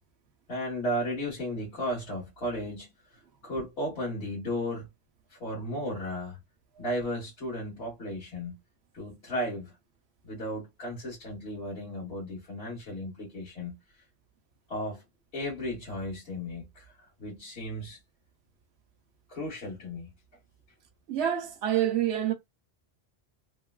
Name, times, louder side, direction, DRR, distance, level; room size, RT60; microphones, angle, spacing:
voice 1, 0.5-2.9 3.4-4.9 5.3-6.4 6.8-8.5 8.9-9.7 10.2-13.7 14.7-15.0 15.3-16.9 17.2-18.0 19.3-20.1, equal, 80° left, 1.6 m, -34 dB
voice 2, 21.1-22.3, right 11 dB, 85° right, 0.9 m, -27 dB
3.2 x 2.3 x 2.2 m
omnidirectional pair, 1.1 m